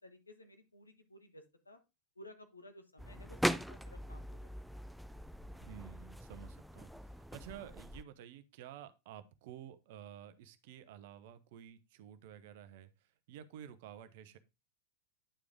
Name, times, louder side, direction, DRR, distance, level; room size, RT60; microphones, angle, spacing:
voice 1, 0.0-1.8 2.1-4.5, left 1 dB, 80° left, 7 dB, 1.3 m, -56 dB
sound 1, 3.0-8.0, equal, ahead, 0.3 m, -40 dB
voice 2, 5.4-14.4, right 10 dB, 50° right, 12 dB, 0.8 m, -52 dB
10.0 x 4.9 x 3.5 m, 0.25 s
figure-of-eight pair, 90°, 0 cm